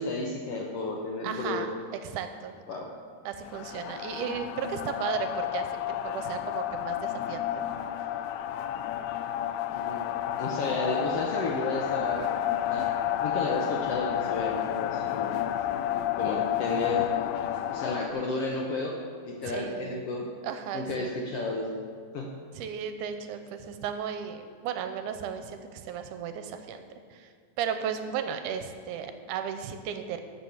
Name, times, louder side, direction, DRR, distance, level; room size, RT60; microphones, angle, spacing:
voice 1, 0.0-1.7 2.7-2.9 9.7-10.0 10.4-12.4 12.7-13.0 13.2-15.4 16.2-17.1 17.7-19.0 19.2-20.3 20.7-21.8 22.1-22.3, left 2 dB, 70° left, 0 dB, 1.5 m, -32 dB
voice 2, 1.2-1.7 2.0-2.6 3.3-7.7 19.5-20.1 20.4-21.1 22.6-26.8 27.1-30.2, right 8 dB, 80° right, 8 dB, 2.1 m, -35 dB
sound 1, 3.5-18.1, left 11 dB, 90° left, 1.6 m, -31 dB
12.5 x 5.5 x 7.2 m, 2.1 s
omnidirectional pair, 3.7 m